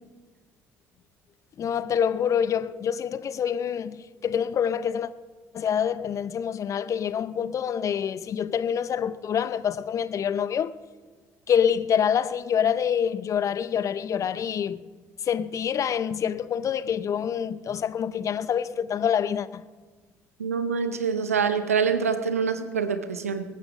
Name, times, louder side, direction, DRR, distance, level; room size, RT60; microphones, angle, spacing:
voice 1, 1.6-5.1 5.5-10.8 11.5-14.8 15.2-19.6, left 8 dB, 45° left, 0.6 m, -26 dB
voice 2, 20.4-23.4, right 6 dB, 90° right, 0.8 m, -25 dB
21.0 x 9.3 x 5.2 m
figure-of-eight pair, 55°, 8 cm